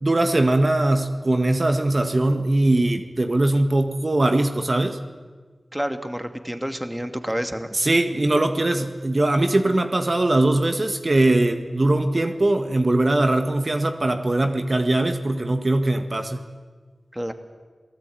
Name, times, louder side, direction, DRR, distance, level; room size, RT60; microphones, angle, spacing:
voice 1, 0.0-5.0 7.7-16.4, right 2 dB, 50° right, 6 dB, 1.8 m, -21 dB
voice 2, 5.7-7.7 17.1-17.3, equal, 10° right, 8 dB, 2.2 m, -29 dB
28.0 x 18.5 x 9.3 m, 1.5 s
cardioid pair, 45°, 0 cm